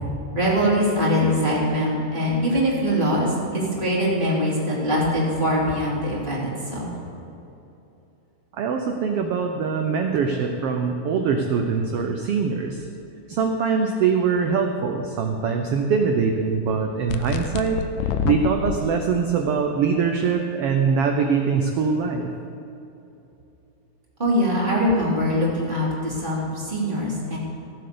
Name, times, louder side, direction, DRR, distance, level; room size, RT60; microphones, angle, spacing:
voice 1, 0.3-6.9 24.2-27.4, equal, 15° right, -6 dB, 3.0 m, -22 dB
voice 2, 8.5-12.9 13.3-22.3, right 5 dB, 90° right, 4 dB, 1.3 m, -23 dB
sound 1, 17.1-18.8, left 7 dB, 85° left, 2.3 m, -26 dB
15.5 x 7.7 x 6.8 m, 2.9 s
omnidirectional pair, 3.7 m